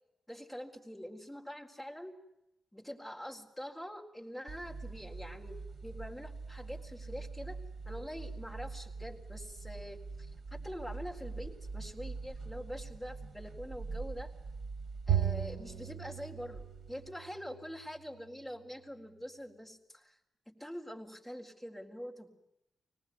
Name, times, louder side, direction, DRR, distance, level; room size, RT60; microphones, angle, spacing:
voice 1, 0.3-2.2 2.7-14.3 15.1-20.2 20.5-22.3, equal, 5° left, -1 dB, 4.1 m, -45 dB
sound 1, 4.5-17.1, right 3 dB, 40° right, 2.9 m, -44 dB
Bowed string instrument, 15.1-17.6, right 9 dB, 70° right, 0.9 m, -35 dB
25.5 x 19.5 x 9.4 m, 0.86 s
wide cardioid pair, 130°, 0 cm